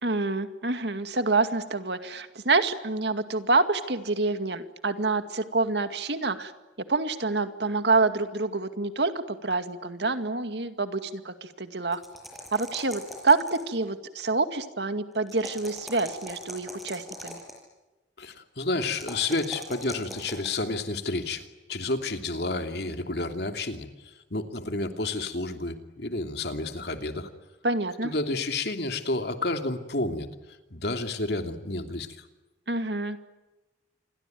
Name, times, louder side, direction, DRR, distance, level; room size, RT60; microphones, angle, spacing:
voice 1, 0.0-6.5 6.9-12.0 12.5-17.4 27.6-28.1 32.7-33.2, right 3 dB, 65° right, 9 dB, 2.2 m, -27 dB
sound 1, 11.9-13.8 15.3-17.6 19.0-20.5, equal, ahead, 7.2 m, -41 dB
voice 2, 18.2-27.3 28.0-30.3 30.7-32.3, left 2 dB, 60° left, 6 dB, 2.9 m, -30 dB
28.0 x 22.5 x 9.3 m, 1.1 s
head